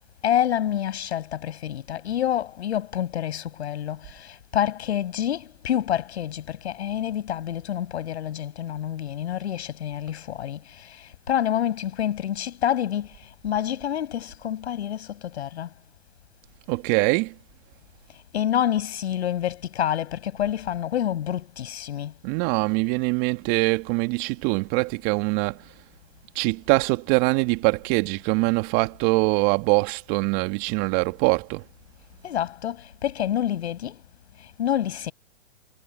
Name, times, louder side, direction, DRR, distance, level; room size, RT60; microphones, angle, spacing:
voice 1, 0.2-15.7 18.3-22.1 32.2-34.0 34.4-35.1, left 10 dB, 75° left, 6.4 m, -28 dB
voice 2, 16.7-17.3 22.2-25.6 26.4-31.6, right 27 dB, 45° right, 1.9 m, -23 dB
hypercardioid pair, 120°, 33 cm